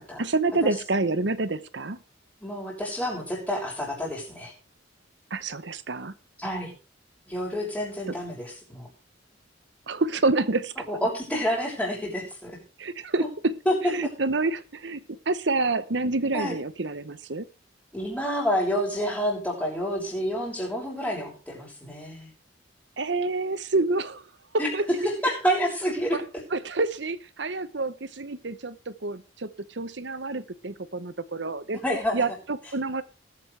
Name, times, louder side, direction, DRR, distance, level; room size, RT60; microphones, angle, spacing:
voice 1, 0.0-2.0 5.3-6.1 8.1-8.2 9.9-10.7 12.8-13.5 13.8-17.5 23.0-24.2 24.5-24.8 26.1-26.2 26.5-31.8 32.1-33.0, right 3 dB, 65° right, 1.0 m, -28 dB
voice 2, 2.4-4.5 6.4-6.7 7.3-8.9 10.9-12.6 13.6-13.9 16.3-16.6 17.9-22.3 24.6-26.2 31.7-32.2, equal, 5° left, 6.7 m, -28 dB
20.5 x 8.7 x 3.4 m
head